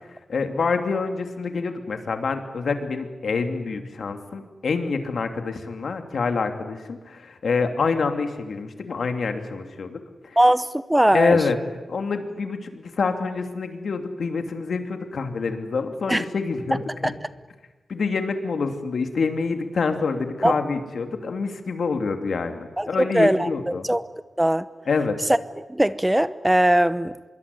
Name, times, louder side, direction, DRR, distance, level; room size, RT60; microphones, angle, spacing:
voice 1, 0.3-10.0 11.1-11.6 11.9-17.1 17.9-23.9 24.9-25.1, left 4 dB, 75° left, 6 dB, 2.9 m, -26 dB
voice 2, 10.4-11.4 16.1-16.2 17.0-17.1 20.4-20.6 22.8-24.0 24.4-24.7 25.3-25.4 25.7-27.1, right 1 dB, 10° right, 15 dB, 0.8 m, -20 dB
25.5 x 22.5 x 9.9 m, 1.2 s
wide cardioid pair, 85°, 0 cm